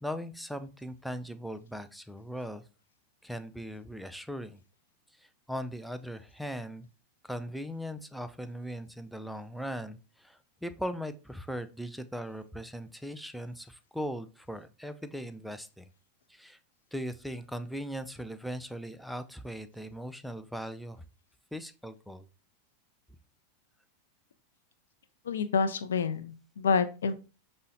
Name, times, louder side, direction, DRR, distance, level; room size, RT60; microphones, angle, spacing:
voice 1, 0.0-2.6 3.2-4.6 5.2-6.9 7.2-15.9 16.3-16.6 16.9-21.0 21.5-22.3, equal, ahead, 10 dB, 0.3 m, -39 dB
voice 2, 25.3-27.1, left 5 dB, 80° left, 11 dB, 0.3 m, -28 dB
5.2 x 2.1 x 2.6 m, 0.32 s
hypercardioid pair, 100°, 0 cm